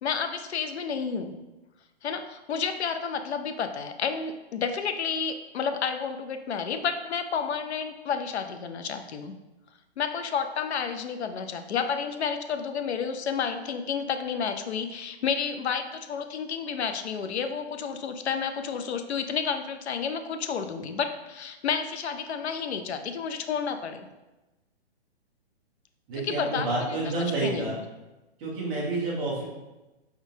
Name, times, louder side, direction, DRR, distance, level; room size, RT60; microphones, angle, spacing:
voice 1, 0.0-1.4 2.0-9.3 10.0-24.1 26.2-27.7, left 6 dB, 80° left, 8 dB, 0.6 m, -31 dB
voice 2, 26.1-27.8 28.4-29.4, right 2 dB, 10° right, -6 dB, 0.5 m, -29 dB
4.6 x 3.6 x 2.7 m, 1.1 s
hypercardioid pair, 160°, 32 cm